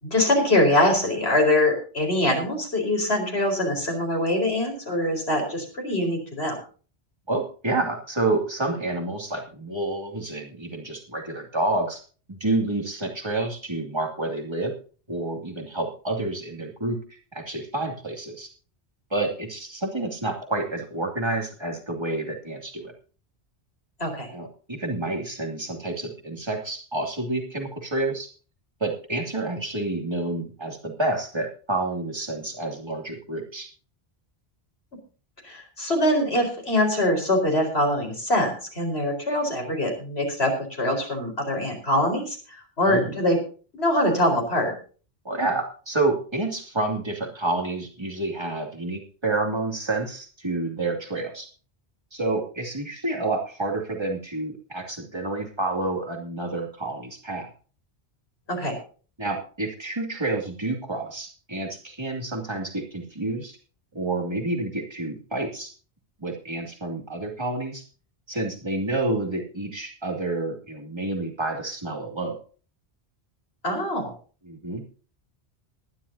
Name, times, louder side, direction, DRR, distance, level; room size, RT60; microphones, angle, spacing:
voice 1, 0.0-6.6 24.0-24.3 35.4-40.5 40.8-43.4 43.8-44.7 58.5-58.7 73.6-74.1, left 1 dB, 70° left, 3 dB, 4.8 m, -23 dB
voice 2, 7.3-12.0 12.3-14.7 15.1-17.0 17.3-18.5 19.1-22.9 24.3-28.3 28.8-33.7 42.8-43.2 45.2-51.5 52.1-57.5 59.2-63.6 63.9-65.7 66.2-67.8 68.3-72.4 74.5-74.8, right 2 dB, 25° right, 2 dB, 2.6 m, -29 dB
20.5 x 11.5 x 2.7 m, 0.38 s
omnidirectional pair, 1.1 m